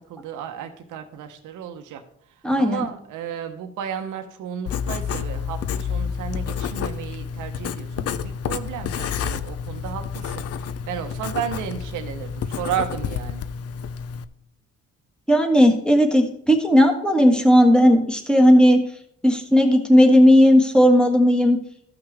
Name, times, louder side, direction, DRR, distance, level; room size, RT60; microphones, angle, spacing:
voice 1, 0.0-2.0 2.6-13.4, right 9 dB, 80° right, 6 dB, 0.9 m, -33 dB
voice 2, 2.4-2.8 15.3-18.8 19.2-21.6, equal, 5° left, 3 dB, 1.5 m, -15 dB
Writing, 4.7-14.2, left 7 dB, 55° left, 0.6 m, -29 dB
14.5 x 5.9 x 3.3 m, 0.69 s
cardioid pair, 90°, 30 cm